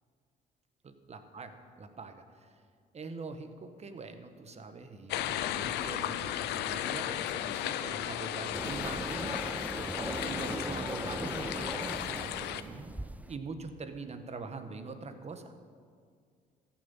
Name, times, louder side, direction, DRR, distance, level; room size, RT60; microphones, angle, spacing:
voice 1, 0.8-2.5 2.9-9.4 9.8-12.9 13.3-15.5, right 4 dB, 40° right, 8 dB, 1.4 m, -43 dB
sound 1, 5.1-12.6, left 12 dB, 85° left, 0.6 m, -35 dB
sound 2, 8.5-13.4, right 1 dB, 10° right, 0.7 m, -39 dB
14.5 x 7.4 x 7.3 m, 2.1 s
supercardioid pair, 75°, 17 cm